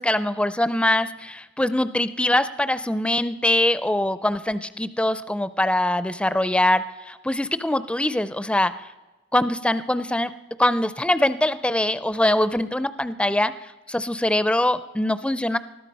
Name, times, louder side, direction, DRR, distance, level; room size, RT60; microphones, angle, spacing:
voice 1, 0.0-8.7 9.3-10.3 10.6-13.5 13.9-15.6, left 1 dB, 5° left, 14 dB, 0.4 m, -23 dB
20.5 x 13.0 x 5.4 m, 1.1 s
head